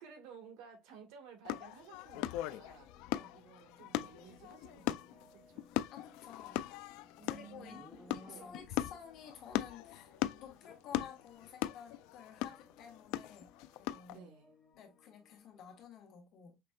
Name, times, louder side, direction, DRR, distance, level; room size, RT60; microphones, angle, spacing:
voice 1, 0.0-2.9 3.3-5.7 7.2-7.9 8.2-8.5 14.1-14.5, right 7 dB, 80° right, 1.7 m, -55 dB
sound 1, 1.4-14.2, left 14 dB, 75° left, 0.3 m, -39 dB
sound 2, 2.1-15.8, left 5 dB, 30° left, 1.9 m, -65 dB
Livestock farm animals working animals, 5.8-9.1, equal, 5° right, 1.0 m, -57 dB
voice 2, 5.9-6.6 7.3-7.8 8.1-13.5 13.8-14.3 14.7-16.6, left 7 dB, 50° left, 1.5 m, -53 dB
5.9 x 3.1 x 2.3 m
cardioid pair, 155°, 0 cm